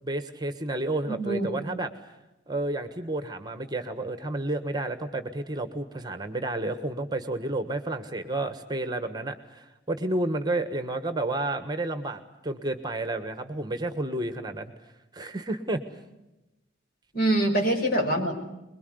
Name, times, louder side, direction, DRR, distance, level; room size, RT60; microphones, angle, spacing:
voice 1, 0.0-1.9 2.5-14.7 15.1-15.8, right 2 dB, 20° right, 9 dB, 1.4 m, -31 dB
voice 2, 1.1-1.5 17.1-18.3, right 1 dB, 55° left, 2 dB, 6.1 m, -24 dB
24.5 x 22.0 x 8.0 m, 0.97 s
head